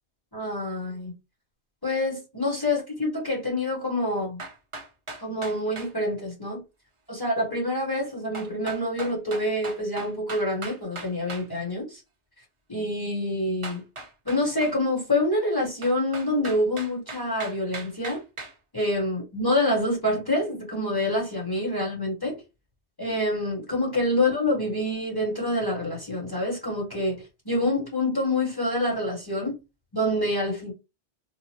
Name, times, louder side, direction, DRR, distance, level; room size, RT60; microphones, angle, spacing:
voice 1, 0.3-1.1 1.8-4.4 5.2-6.6 7.1-12.0 12.7-13.8 14.2-18.2 18.7-22.4 23.0-29.6 29.9-30.7, left 1 dB, 20° left, 1.1 m, -26 dB
sound 1, 4.4-5.9 8.3-11.5 13.6-14.8 15.8-18.5, right 3 dB, 30° right, 0.7 m, -38 dB
3.2 x 2.0 x 2.8 m
omnidirectional pair, 1.2 m